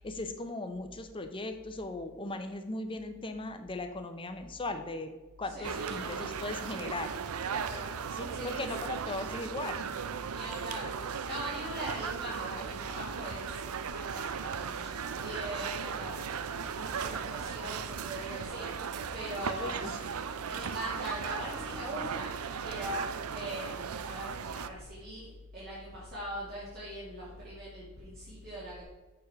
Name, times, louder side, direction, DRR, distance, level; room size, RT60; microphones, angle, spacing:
voice 1, 0.0-5.1 5.4-7.1 8.2-9.8 19.5-20.0, left 2 dB, 25° left, 7 dB, 0.7 m, -38 dB
voice 2, 5.4-6.1 7.6-8.7 10.3-20.1 20.5-25.3 25.5-28.8, equal, 45° right, -9 dB, 2.5 m, -41 dB
sound 1, 5.6-24.7, right 6 dB, 85° right, 0.5 m, -37 dB
6.9 x 5.0 x 5.7 m, 1.2 s
head